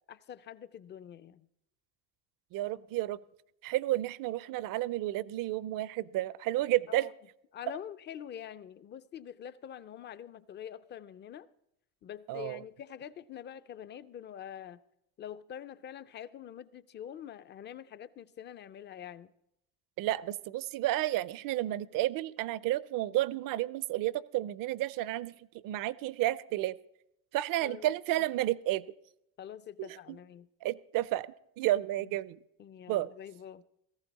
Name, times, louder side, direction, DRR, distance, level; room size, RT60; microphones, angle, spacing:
voice 1, 0.1-1.5 6.9-7.1 7.5-11.5 12.0-14.8 15.2-19.3 27.6-27.9 29.4-30.5 32.0-32.1 32.6-33.6, left 9 dB, 30° left, 0.4 m, -45 dB
voice 2, 2.5-3.2 3.6-7.1 12.3-12.6 20.0-25.3 25.6-26.8 27.3-28.9 29.8-29.9 30.6-31.3 31.6-32.4 32.9-33.1, right 15 dB, 65° right, 0.6 m, -31 dB
17.5 x 14.5 x 4.0 m
cardioid pair, 150°, 36 cm